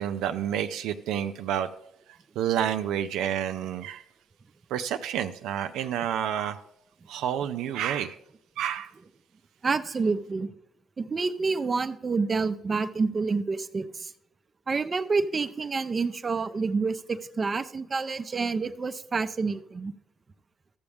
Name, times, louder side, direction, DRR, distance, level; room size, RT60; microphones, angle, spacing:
voice 1, 0.0-1.7 2.4-4.0 4.7-6.6 7.1-8.2 8.6-8.9 9.9-10.0, right 10 dB, 85° right, 8 dB, 0.4 m, -29 dB
voice 2, 9.6-10.5 11.0-14.1 14.7-19.9, right 4 dB, 35° right, 11 dB, 0.6 m, -28 dB
13.0 x 7.0 x 3.4 m, 0.79 s
supercardioid pair, 75°, 0 cm